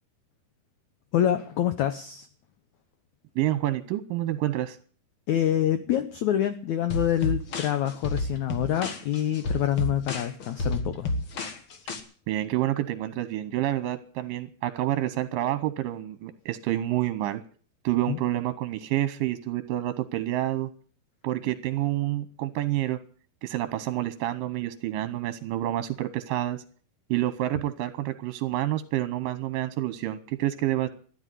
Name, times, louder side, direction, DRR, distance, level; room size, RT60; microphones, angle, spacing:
voice 1, 1.1-2.3 5.3-11.1 18.1-18.2, left 11 dB, 85° left, 10 dB, 1.6 m, -26 dB
voice 2, 3.4-4.8 12.3-17.4 17.8-20.7 21.2-23.0 23.4-26.6 27.1-30.9, right 14 dB, 75° right, 12 dB, 2.2 m, -28 dB
sound 1, 6.9-12.0, left 2 dB, 50° left, 1.6 m, -31 dB
14.0 x 10.5 x 9.2 m, 0.43 s
omnidirectional pair, 4.7 m